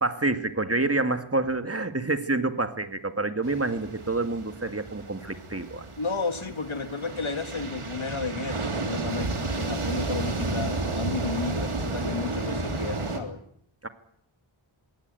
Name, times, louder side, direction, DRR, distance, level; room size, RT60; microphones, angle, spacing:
voice 1, 0.0-5.9 13.8-13.9, right 2 dB, 30° right, 8 dB, 2.1 m, -28 dB
sound 1, 3.4-13.2, right 3 dB, 85° right, 3.4 m, -32 dB
voice 2, 6.0-13.4, left 4 dB, 70° left, 9 dB, 1.9 m, -33 dB
22.0 x 17.5 x 9.4 m, 0.70 s
wide cardioid pair, 50°, 49 cm